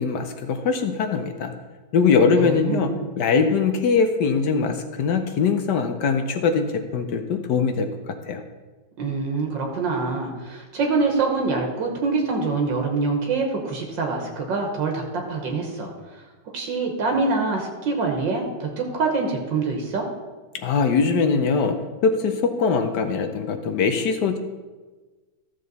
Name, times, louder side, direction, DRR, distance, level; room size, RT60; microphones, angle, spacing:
voice 1, 0.0-1.5 1.9-2.9 3.2-8.4 20.5-21.8 22.0-24.4, left 5 dB, 70° left, 7 dB, 1.2 m, -22 dB
voice 2, 2.3-3.1 9.0-15.9 16.5-20.1, right 4 dB, 80° right, 2 dB, 1.9 m, -25 dB
13.5 x 6.6 x 4.0 m, 1.3 s
omnidirectional pair, 2.0 m